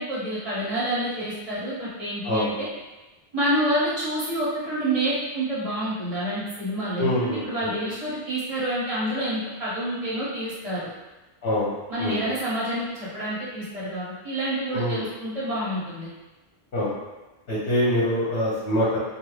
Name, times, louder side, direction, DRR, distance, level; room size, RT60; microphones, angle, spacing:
voice 1, 0.0-2.7 3.3-10.9 11.9-16.1, right 1 dB, 35° right, -9 dB, 1.0 m, -28 dB
voice 2, 7.0-7.7 11.4-11.7 12.0-12.2 14.7-15.1 16.7-16.9 17.5-19.0, left 1 dB, 70° left, -7 dB, 0.9 m, -24 dB
2.6 x 2.3 x 3.1 m, 1.1 s
omnidirectional pair, 1.1 m